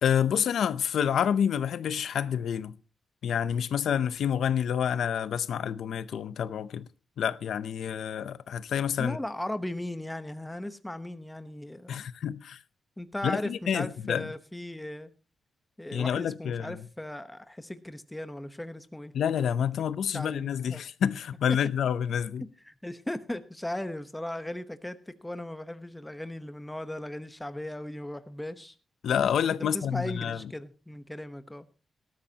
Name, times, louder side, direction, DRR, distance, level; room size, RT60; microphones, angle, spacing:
voice 1, 0.0-2.8 3.2-6.8 7.2-9.2 11.9-12.6 13.2-14.3 15.9-16.8 19.1-22.4 29.0-30.4, left 8 dB, 75° left, 0.6 m, -28 dB
voice 2, 9.0-12.1 13.0-15.1 15.8-19.1 20.1-20.8 22.6-28.7 29.5-31.7, left 1 dB, 5° left, 1.0 m, -37 dB
19.0 x 13.0 x 2.9 m
wide cardioid pair, 155°, 0 cm